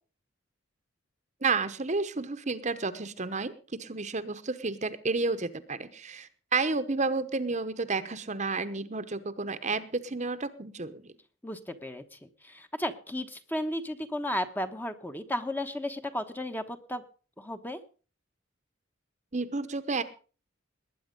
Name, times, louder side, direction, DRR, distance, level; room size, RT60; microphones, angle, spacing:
voice 1, 1.4-3.5 3.8-11.1 19.3-20.0, right 3 dB, 35° right, 11 dB, 0.9 m, -31 dB
voice 2, 11.4-17.0 17.4-17.8, left 1 dB, 10° left, 8 dB, 1.0 m, -34 dB
20.0 x 9.4 x 5.2 m, 0.38 s
head